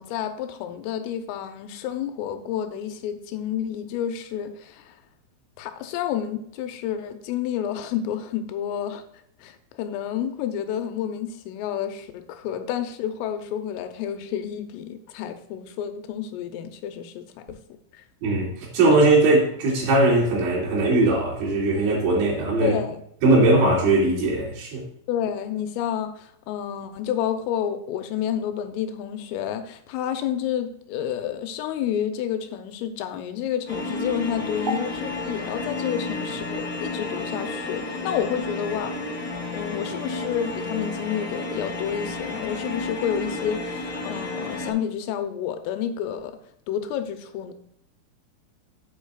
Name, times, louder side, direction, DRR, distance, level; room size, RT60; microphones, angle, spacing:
voice 1, 0.0-5.0 5.6-9.0 9.4-17.6 17.9-18.0 22.6-23.0 25.1-38.9 39.5-46.3 46.7-47.5, left 9 dB, 85° left, 7 dB, 3.3 m, -30 dB
voice 2, 18.2-22.8 23.2-24.8, right 2 dB, 65° right, -4 dB, 4.7 m, -20 dB
sound 1, 33.7-44.7, left 2 dB, 35° left, 1.2 m, -31 dB
11.0 x 8.7 x 2.4 m, 0.70 s
omnidirectional pair, 5.8 m